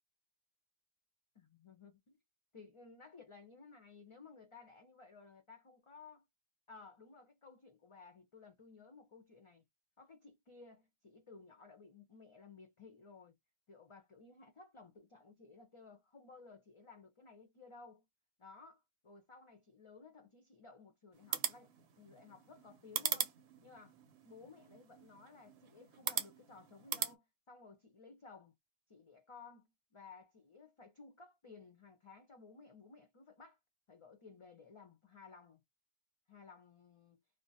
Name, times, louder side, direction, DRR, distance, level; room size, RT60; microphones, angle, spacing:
voice 1, 1.4-2.2 2.5-6.3 6.7-9.6 10.0-13.4 13.7-18.0 18.4-23.3 23.6-24.0 24.2-28.5 28.9-33.6 33.9-35.6 36.3-37.2, left 4 dB, 40° left, 0.5 m, -57 dB
sound 1, 21.1-27.1, right 8 dB, 75° right, 0.9 m, -41 dB
2.4 x 2.1 x 3.9 m
omnidirectional pair, 1.1 m